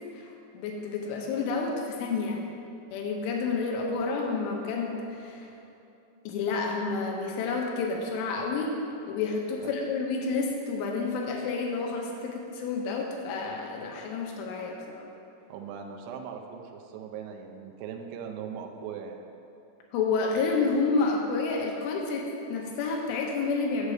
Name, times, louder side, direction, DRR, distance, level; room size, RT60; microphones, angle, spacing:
voice 1, 0.1-2.4 2.9-5.5 6.3-8.7 9.1-15.1 19.9-23.9, left 4 dB, 85° left, 0 dB, 3.5 m, -30 dB
voice 2, 15.5-19.3, right 7 dB, 80° right, 3 dB, 2.9 m, -40 dB
8.1 x 6.4 x 4.9 m, 2.7 s
omnidirectional pair, 5.5 m